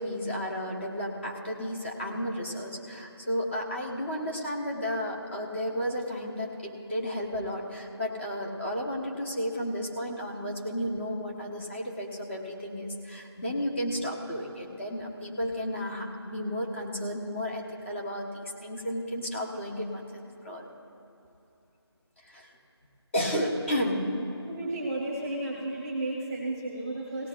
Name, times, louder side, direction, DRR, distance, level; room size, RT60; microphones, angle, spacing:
voice 1, 0.0-20.7 22.2-22.5 23.1-24.2, equal, 25° left, -1 dB, 1.2 m, -33 dB
voice 2, 24.5-27.3, right 2 dB, 10° right, -2 dB, 1.1 m, -33 dB
18.0 x 17.0 x 2.5 m, 2.7 s
figure-of-eight pair, 170°, 14 cm